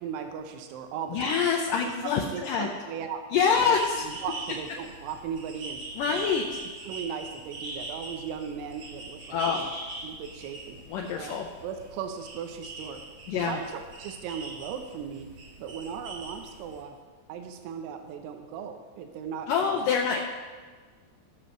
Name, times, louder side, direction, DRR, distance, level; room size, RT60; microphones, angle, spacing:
voice 1, 0.0-1.5 1.8-3.2 3.6-5.8 6.1-6.4 6.8-9.7 10.0-10.8 11.2-13.0 13.5-15.3 15.6-17.0 17.3-19.8, right 7 dB, 85° right, 6 dB, 2.8 m, -37 dB
voice 2, 1.1-2.7 3.3-4.0 6.0-6.4 9.3-9.6 10.9-11.5 13.3-13.6 19.5-20.2, left 6 dB, 85° left, 0 dB, 1.9 m, -25 dB
sound 1, 3.5-16.8, right 2 dB, 55° right, 2.6 m, -42 dB
17.5 x 6.4 x 3.0 m, 1.5 s
omnidirectional pair, 4.7 m